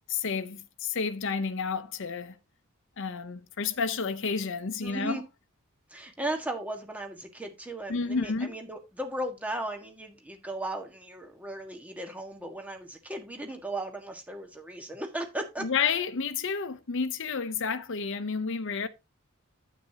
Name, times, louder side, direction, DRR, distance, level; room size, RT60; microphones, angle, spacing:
voice 1, 0.1-2.4 3.0-5.2 7.9-8.6 15.6-18.9, left 5 dB, 60° left, 0.7 m, -30 dB
voice 2, 4.8-5.2 5.9-15.7, right 1 dB, 5° right, 1.6 m, -36 dB
9.3 x 8.5 x 2.8 m
head